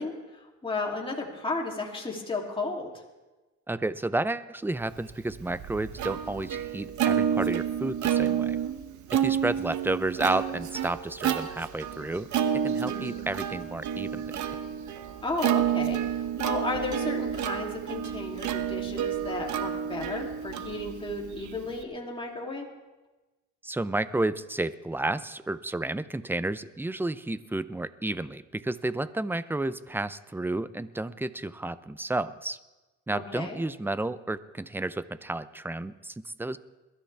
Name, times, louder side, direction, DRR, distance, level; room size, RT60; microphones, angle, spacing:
voice 1, 0.0-2.9 12.8-13.1 15.2-22.7 33.1-33.6, left 3 dB, 15° left, -1 dB, 2.9 m, -34 dB
voice 2, 3.7-8.6 9.1-12.3 12.5-14.3 23.6-32.6 33.1-36.6, right 2 dB, 5° right, 15 dB, 0.5 m, -31 dB
Plucked string instrument, 5.1-21.8, right 9 dB, 70° right, 1.1 m, -30 dB
22.0 x 13.0 x 3.4 m, 1.1 s
cardioid pair, 90°, 30 cm